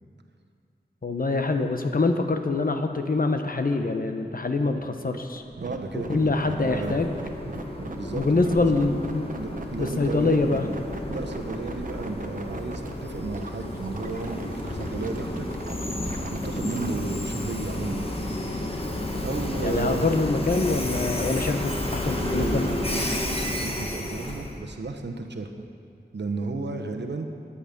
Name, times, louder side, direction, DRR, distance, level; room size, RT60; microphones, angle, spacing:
voice 1, 1.0-5.4 5.9-7.1 8.1-9.3 9.8-10.7 19.6-22.6, left 3 dB, 55° left, 6 dB, 1.0 m, -25 dB
sound 1, 5.4-17.0, right 3 dB, 50° right, 0.9 m, -39 dB
voice 2, 5.6-7.0 7.9-8.8 9.4-10.8 11.1-15.5 16.3-18.1 19.2-20.1 22.3-25.6 26.1-27.3, right 3 dB, 80° right, 4 dB, 1.0 m, -33 dB
Train, 5.8-24.6, left 1 dB, 30° left, 1.5 m, -32 dB
14.5 x 10.0 x 5.3 m, 2.4 s
wide cardioid pair, 65°, 18 cm